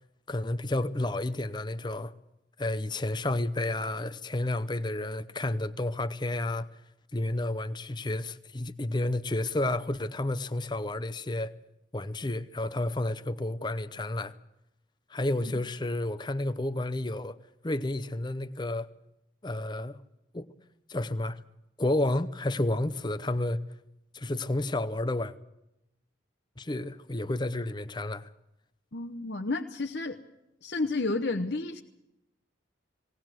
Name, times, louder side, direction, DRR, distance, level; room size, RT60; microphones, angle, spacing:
voice 1, 0.3-2.1 2.6-6.7 7.1-11.5 11.9-14.3 15.1-17.4 17.6-18.9 19.4-20.0 20.3-20.5 20.9-21.4 21.8-23.6 24.1-25.3 26.6-28.3, left 1 dB, 25° left, 0.7 m, -31 dB
voice 2, 28.9-30.2 30.6-31.8, left 3 dB, 60° left, 1.0 m, -31 dB
19.5 x 18.5 x 7.6 m
head